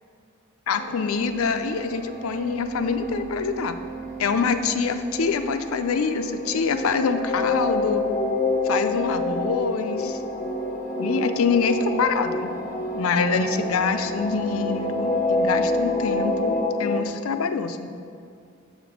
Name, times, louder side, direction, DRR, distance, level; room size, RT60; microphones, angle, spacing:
voice 1, 0.7-3.7 4.2-8.0 8.6-10.2 11.0-12.5 12.9-17.9, left 5 dB, 90° left, 9 dB, 0.5 m, -25 dB
sound 1, 0.7-16.6, right 4 dB, 40° right, 0.9 m, -38 dB
sound 2, 6.3-17.0, left 2 dB, 25° left, 0.5 m, -27 dB
7.2 x 5.1 x 5.0 m, 2.4 s
head